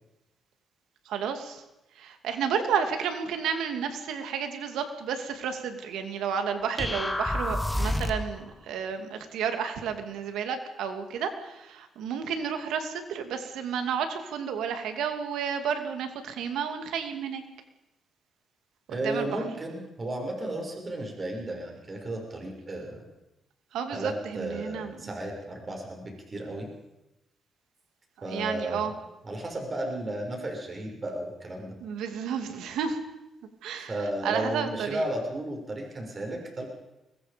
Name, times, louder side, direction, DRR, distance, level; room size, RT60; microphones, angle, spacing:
voice 1, 1.1-1.6 2.0-17.4 18.9-19.4 23.7-25.1 28.3-28.9 31.8-33.0 33.6-33.9 34.2-35.0, right 7 dB, 85° right, 7 dB, 2.6 m, -31 dB
sound 1, 6.8-8.4, left 1 dB, 10° left, 1.7 m, -28 dB
voice 2, 18.9-23.0 23.9-26.7 28.2-28.9 29.2-31.8 33.9-36.7, right 1 dB, 35° right, 1 dB, 6.5 m, -34 dB
24.0 x 21.0 x 5.3 m, 0.95 s
cardioid pair, 85°, 0 cm